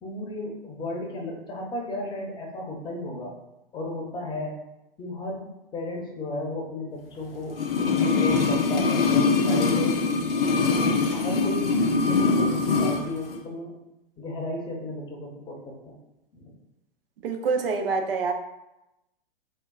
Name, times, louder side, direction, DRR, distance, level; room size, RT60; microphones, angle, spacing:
voice 1, 0.0-3.4 3.7-4.6 5.0-7.6 8.0-10.0 11.1-13.8 14.2-16.0 16.3-16.5, left 1 dB, 15° left, -1 dB, 0.7 m, -34 dB
sound 1, 7.5-13.0 13.3-13.4, left 4 dB, 70° left, 0.6 m, -23 dB
voice 2, 17.2-18.3, right 4 dB, 70° right, 5 dB, 0.6 m, -26 dB
4.3 x 2.3 x 2.3 m, 0.92 s
figure-of-eight pair, 105°, 29 cm